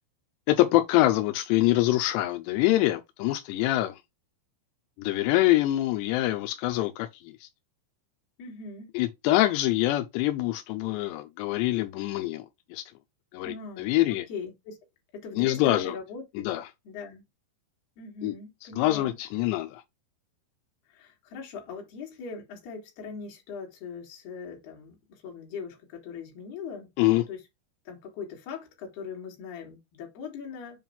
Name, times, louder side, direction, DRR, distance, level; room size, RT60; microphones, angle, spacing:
voice 1, 0.5-4.0 5.0-7.1 7.4-7.5 8.9-12.5 12.7-12.8 13.3-14.3 15.4-16.0 16.4-16.6 18.2-18.4 18.8-19.8 27.0-27.2, left 16 dB, 85° left, 2.5 m, -25 dB
voice 2, 8.4-8.9 13.4-14.8 15.1-16.5 16.9-17.2 18.0-19.2 20.9-27.4 27.9-30.8, left 5 dB, 60° left, 3.5 m, -40 dB
7.4 x 2.6 x 5.5 m
omnidirectional pair, 5.5 m